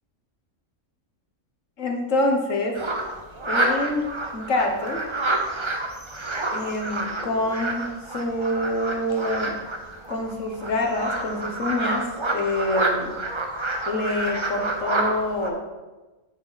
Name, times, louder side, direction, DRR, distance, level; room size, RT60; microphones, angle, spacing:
voice 1, 1.8-2.8 3.4-4.1 4.3-5.0 6.5-9.5 10.1-12.1 12.3-13.1 13.8-15.6, left 1 dB, 65° left, 2 dB, 1.5 m, -26 dB
sound 1, 2.7-15.5, right 2 dB, 25° right, 0.7 m, -28 dB
10.0 x 6.1 x 4.1 m, 1.2 s
omnidirectional pair, 1.5 m